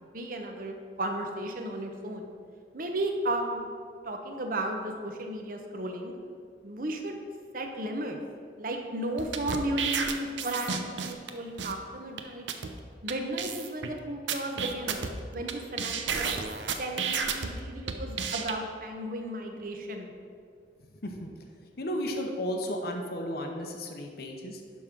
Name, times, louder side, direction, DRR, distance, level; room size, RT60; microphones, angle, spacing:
voice 1, 0.1-2.3 2.7-3.7 4.0-6.1 6.6-7.2 7.5-8.2 8.6-12.5 13.0-15.0 15.3-16.3 16.8-20.1, right 1 dB, 50° right, 3 dB, 1.0 m, -34 dB
sound 1, 9.2-11.3 11.6-11.7 12.2-12.3 12.5-12.7 13.1-13.2 13.4-13.9 14.3-15.5 15.8-17.5 17.9-18.5, right 6 dB, 90° right, 0.7 m, -31 dB
voice 2, 20.8-21.3 21.6-24.6, equal, 60° left, 2 dB, 0.9 m, -34 dB
11.5 x 3.8 x 6.0 m, 2.1 s
head